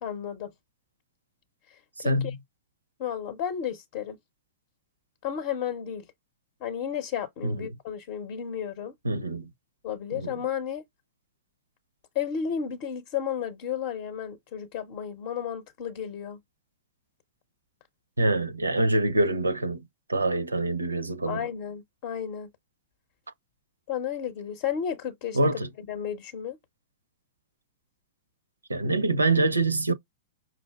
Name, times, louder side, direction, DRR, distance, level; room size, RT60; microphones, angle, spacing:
voice 1, 0.0-0.5 2.0-2.3 3.0-4.2 5.2-6.0 6.6-8.9 9.8-10.8 12.1-16.4 21.3-22.5 23.9-25.5 25.9-26.6, left 8 dB, 45° left, 0.6 m, -33 dB
voice 2, 2.0-2.4 7.4-7.7 9.0-9.5 10.1-10.3 18.2-21.5 25.3-25.7 28.7-29.9, right 2 dB, 80° right, 0.5 m, -25 dB
5.6 x 2.4 x 2.3 m
figure-of-eight pair, 100°, 0 cm